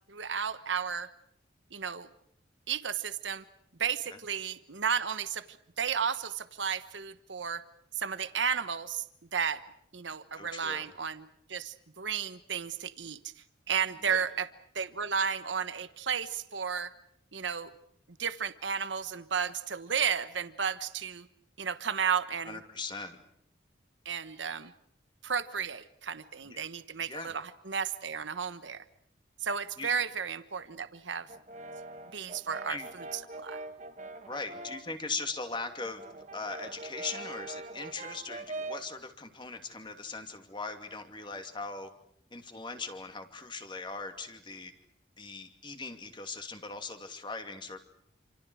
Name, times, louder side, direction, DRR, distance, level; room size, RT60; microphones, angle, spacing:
voice 1, 0.1-1.1 1.7-2.1 2.7-3.4 3.8-7.6 7.9-9.1 9.3-9.6 9.9-13.3 13.7-14.5 14.7-16.9 17.3-17.7 18.2-21.3 21.6-22.6 24.0-24.7 25.2-28.8 29.4-31.3 32.1-33.6, right 7 dB, 75° right, 12 dB, 1.2 m, -33 dB
voice 2, 10.4-10.9 14.0-14.2 22.5-23.2 26.5-26.6 27.1-27.3 29.8-30.0 32.7-32.9 34.3-36.0 36.3-41.9 42.3-44.7 45.2-47.8, left 4 dB, 25° left, 7 dB, 2.6 m, -40 dB
Brass instrument, 31.3-34.9 35.3-38.9, right 2 dB, 40° right, 1.8 m, -43 dB
28.5 x 27.0 x 6.3 m, 0.68 s
head